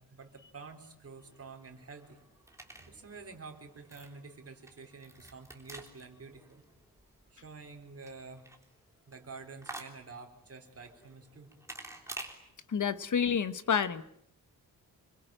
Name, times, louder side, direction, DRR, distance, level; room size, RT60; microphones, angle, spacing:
voice 1, 0.0-2.2 2.7-6.6 7.3-8.5 9.1-11.5, right 4 dB, 40° right, 4 dB, 4.2 m, -49 dB
sound 1, 1.1-12.3, right 2 dB, 10° right, 3.5 m, -50 dB
voice 2, 12.7-14.0, left 7 dB, 55° left, 14 dB, 1.2 m, -29 dB
27.0 x 24.0 x 9.0 m, 0.69 s
wide cardioid pair, 180°, 35 cm